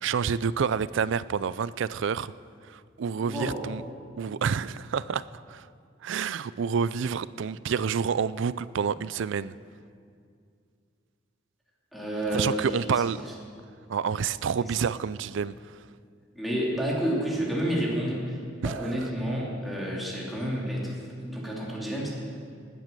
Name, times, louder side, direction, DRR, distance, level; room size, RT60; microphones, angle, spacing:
voice 1, 0.0-2.3 2.6-3.8 4.2-5.7 6.0-9.6 12.3-13.2 13.9-15.5 18.6-18.9, right 6 dB, 65° right, 18 dB, 0.4 m, -28 dB
voice 2, 3.2-3.6 11.9-12.7 14.6-14.7 16.3-20.9 21.2-22.1, right 1 dB, ahead, -5 dB, 2.9 m, -30 dB
19.5 x 9.4 x 6.7 m, 2.3 s
head